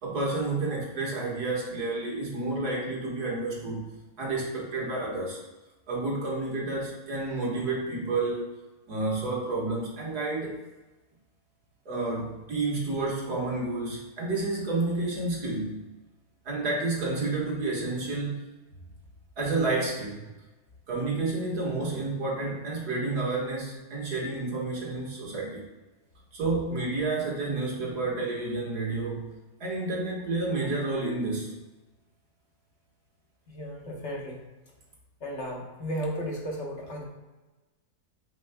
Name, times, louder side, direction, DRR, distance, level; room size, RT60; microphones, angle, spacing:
voice 1, 0.0-5.4 5.9-8.5 8.9-10.6 11.9-15.8 16.5-18.4 19.4-20.3 20.9-25.7 26.3-29.3 29.6-31.6, right 3 dB, 75° right, -3 dB, 2.2 m, -30 dB
voice 2, 33.5-34.4 35.2-37.0, equal, 50° left, -1 dB, 1.4 m, -34 dB
9.2 x 5.2 x 2.2 m, 1.1 s
omnidirectional pair, 1.7 m